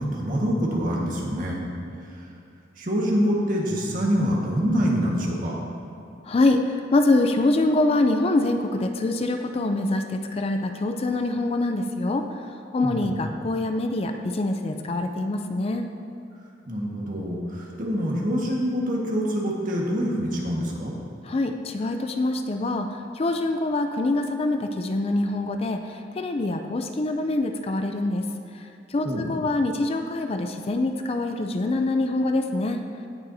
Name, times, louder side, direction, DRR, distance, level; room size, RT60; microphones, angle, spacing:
voice 1, 0.0-1.6 2.8-5.6 12.8-13.1 16.7-20.9 29.0-29.3, equal, 50° right, -3 dB, 1.6 m, -25 dB
voice 2, 6.2-6.6 6.9-12.2 12.7-15.9 21.2-28.3 28.5-32.8, left 2 dB, 35° left, 6 dB, 0.4 m, -25 dB
17.0 x 6.8 x 2.7 m, 2.6 s
head